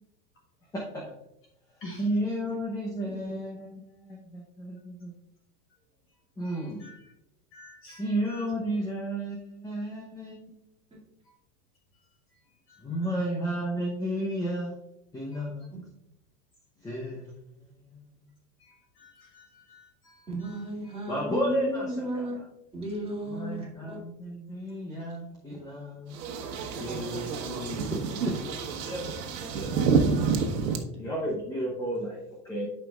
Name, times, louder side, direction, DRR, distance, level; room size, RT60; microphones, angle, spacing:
voice 1, 0.7-1.1 2.0-5.1 6.4-7.0 8.0-10.7 12.8-14.8 15.1-15.7 16.8-17.3 17.6-18.0 21.1-22.5 23.2-26.2 26.7-28.4 28.8-30.0 31.0-32.7, equal, 5° left, -2 dB, 0.7 m, -33 dB
voice 2, 6.5-6.9 7.5-8.0 15.3-15.4 19.0-20.1 20.4-20.7 27.1-27.2, left 1 dB, 25° left, -1 dB, 1.1 m, -48 dB
voice 3, 20.3-22.4 22.7-24.0 30.6-31.1, right 1 dB, 10° right, -5 dB, 2.3 m, -34 dB
sound 1, 26.1-30.8, right 5 dB, 80° right, 1.3 m, -28 dB
11.5 x 5.3 x 2.4 m, 0.85 s
supercardioid pair, 140°, 50 cm